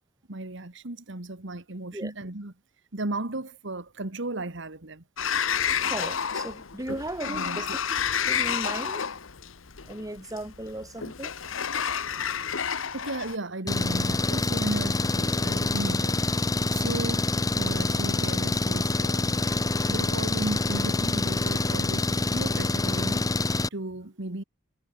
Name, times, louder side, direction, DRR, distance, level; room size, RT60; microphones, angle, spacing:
voice 1, 0.3-2.5 2.9-5.0 6.9-7.0 7.3-7.8 12.9-16.2 16.5-19.4 19.9-24.4, right 2 dB, 65° right, 2.0 m, -35 dB
Sliding door, 5.2-13.4, left 7 dB, 90° left, 1.3 m, -30 dB
voice 2, 5.9-7.7 8.3-9.0 9.8-11.3, right 1 dB, 20° right, 5.8 m, -36 dB
Engine, 13.7-23.7, left 2 dB, 20° left, 0.8 m, -26 dB
head